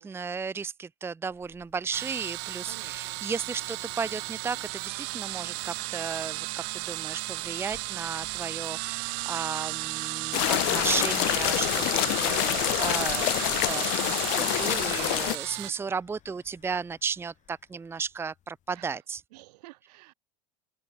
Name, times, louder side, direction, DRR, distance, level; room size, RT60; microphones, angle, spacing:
voice 1, 0.0-19.2, right 5 dB, 10° right, 0.7 m, -34 dB
sound 1, 1.3-19.0, left 12 dB, 40° left, 6.5 m, -61 dB
sound 2, 1.9-15.7, right 40 dB or more, 65° right, 0.9 m, -34 dB
voice 2, 2.6-3.2 15.6-15.9 18.7-19.0 19.3-20.1, right 20 dB, 85° right, 6.6 m, -52 dB
sound 3, 10.3-15.4, left 40 dB or more, 60° left, 0.4 m, -26 dB
open air
supercardioid pair, 135°, 20 cm